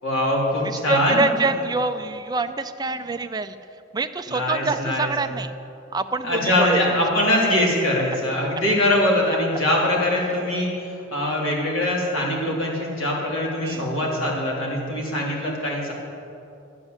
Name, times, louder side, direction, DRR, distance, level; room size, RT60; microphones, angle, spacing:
voice 1, 0.0-1.3 4.3-5.1 6.2-10.7 11.1-15.9, left 1 dB, 85° left, -4 dB, 3.7 m, -22 dB
voice 2, 0.6-3.6 3.9-5.5 5.9-7.0 13.6-13.8, right 3 dB, 20° right, 8 dB, 0.5 m, -25 dB
13.0 x 9.7 x 8.1 m, 2.8 s
head